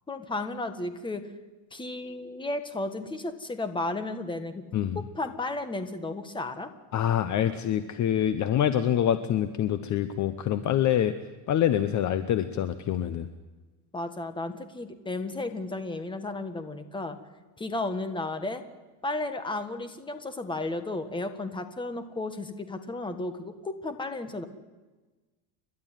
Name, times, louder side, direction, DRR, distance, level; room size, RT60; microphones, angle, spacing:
voice 1, 0.1-1.2 1.7-4.6 4.9-6.7 13.9-17.2 17.6-18.6 19.0-24.4, left 2 dB, 10° left, 9 dB, 1.6 m, -33 dB
voice 2, 6.9-11.1 11.5-13.3, left 10 dB, 35° left, 11 dB, 0.9 m, -25 dB
30.0 x 12.0 x 9.2 m, 1.2 s
cardioid pair, 150°, 48 cm